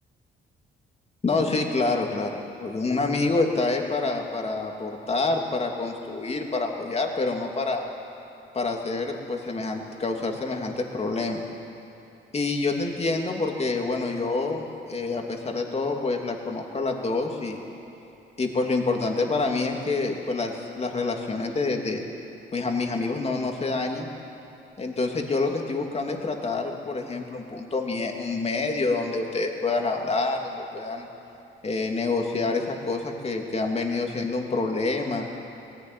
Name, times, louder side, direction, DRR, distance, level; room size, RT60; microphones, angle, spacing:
voice 1, 1.2-7.8 8.5-11.4 12.3-17.6 18.4-22.0 22.5-24.1 24.8-31.1 31.6-35.2, left 3 dB, 30° left, 2 dB, 2.9 m, -27 dB
19.5 x 16.0 x 9.6 m, 2.9 s
cardioid pair, 90°, 20 cm